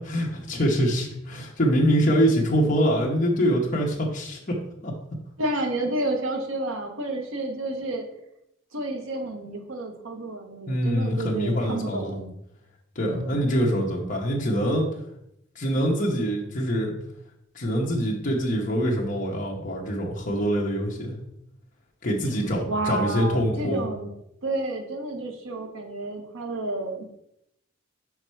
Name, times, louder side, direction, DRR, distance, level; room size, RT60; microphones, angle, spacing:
voice 1, 0.0-4.6 4.8-4.9 10.7-12.2 12.9-14.9 15.5-16.9 17.5-21.1 22.0-23.9, equal, 40° left, -2 dB, 0.9 m, -24 dB
voice 2, 5.4-8.1 8.7-12.3 13.0-13.6 22.7-24.1 24.4-27.2, right 2 dB, 85° right, 4 dB, 0.9 m, -30 dB
5.4 x 4.7 x 4.5 m, 0.80 s
head